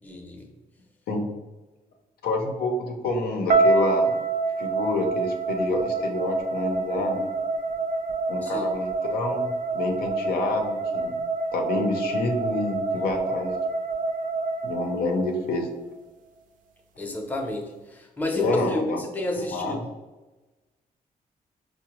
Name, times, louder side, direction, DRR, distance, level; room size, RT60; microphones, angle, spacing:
voice 1, 0.0-0.5 8.4-8.7 17.0-19.8, left 1 dB, 10° left, 1 dB, 0.5 m, -31 dB
voice 2, 2.2-4.2 4.6-7.2 8.3-11.1 11.5-13.6 14.6-15.7 18.3-19.0 19.4-19.8, left 2 dB, 85° left, 3 dB, 0.6 m, -28 dB
sound 1, 3.5-15.6, right 3 dB, 60° right, 0.4 m, -27 dB
4.7 x 2.1 x 2.9 m, 1.1 s
cardioid pair, 115°, 15 cm